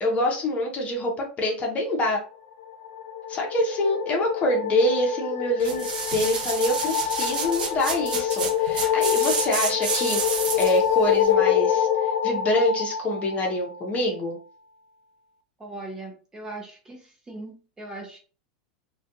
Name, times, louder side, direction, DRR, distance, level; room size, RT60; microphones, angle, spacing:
voice 1, 0.0-2.2 3.3-10.2 10.6-11.9 12.2-14.4, left 1 dB, 30° left, 1 dB, 0.8 m, -25 dB
sound 1, 2.6-14.0, left 9 dB, 80° left, 0.4 m, -26 dB
sound 2, 5.6-10.9 11.3-11.4, right 5 dB, 85° right, 0.6 m, -30 dB
voice 2, 15.6-18.2, right 2 dB, 15° right, 0 dB, 0.8 m, -39 dB
2.3 x 2.2 x 2.8 m, 0.37 s
hypercardioid pair, 115°, 5 cm